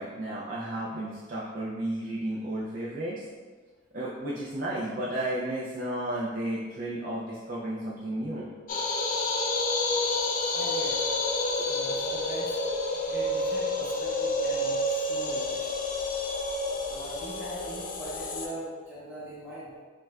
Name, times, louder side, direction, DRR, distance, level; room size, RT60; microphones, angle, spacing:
voice 1, 0.0-3.2 3.9-8.5, right 1 dB, 40° right, -6 dB, 0.4 m, -33 dB
sound 1, 8.7-18.5, left 2 dB, 40° left, 0.3 m, -29 dB
voice 2, 10.5-11.1 11.6-12.5 13.1-15.7 16.8-19.7, right 1 dB, 10° right, -12 dB, 1.0 m, -41 dB
5.8 x 2.2 x 2.3 m, 1.4 s
head